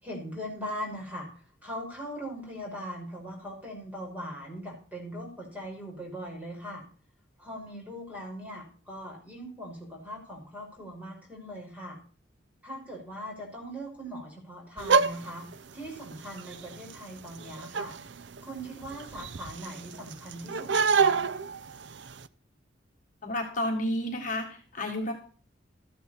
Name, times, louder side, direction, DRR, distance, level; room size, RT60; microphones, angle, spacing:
voice 1, 0.0-1.3 1.6-6.8 7.4-12.0 12.6-15.5 15.7-17.9 18.4-21.2, equal, 10° right, -1 dB, 5.6 m, -40 dB
sound 1, 14.8-22.3, right 5 dB, 70° right, 0.6 m, -30 dB
voice 2, 23.2-25.1, left 1 dB, 45° left, 1 dB, 1.7 m, -31 dB
13.5 x 11.5 x 4.4 m, 0.40 s
head